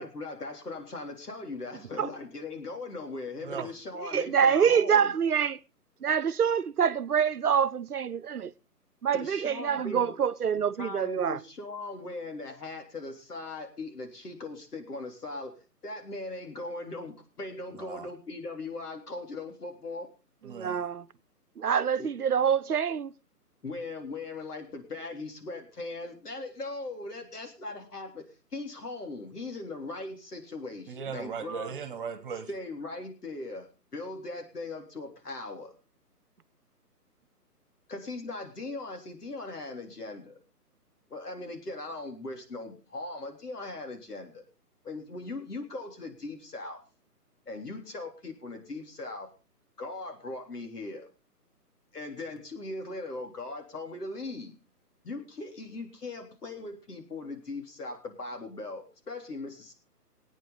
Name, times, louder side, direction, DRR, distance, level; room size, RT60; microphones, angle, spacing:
voice 1, 0.0-5.1 9.1-10.1 10.8-15.6 15.8-20.1 22.0-22.1 23.6-31.7 32.5-35.7 37.9-40.4 41.1-44.4 44.8-46.8 47.5-49.3 49.8-51.1 51.9-54.5 55.0-59.7, left 2 dB, 70° left, 3.6 m, -39 dB
voice 2, 3.4-3.7 17.7-18.1 20.4-20.8 30.9-32.5, right 6 dB, 35° right, 1.6 m, -38 dB
voice 3, 4.0-5.6 6.0-8.5 9.0-11.4 20.4-21.0 21.6-23.1, right 7 dB, 65° right, 1.0 m, -26 dB
21.5 x 9.1 x 4.0 m
figure-of-eight pair, 145°, 48 cm